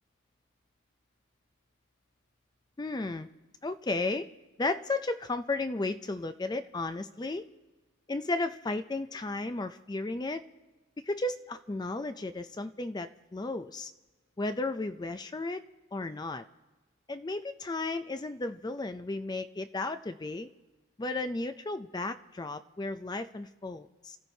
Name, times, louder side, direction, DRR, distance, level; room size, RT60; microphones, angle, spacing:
voice 1, 2.8-3.3 3.6-4.3 4.6-7.5 8.1-10.4 11.0-13.9 14.4-15.6 15.9-16.4 17.1-20.5 21.0-24.2, left 2 dB, 20° left, 11 dB, 0.4 m, -34 dB
30.0 x 15.0 x 2.7 m, 1.2 s
head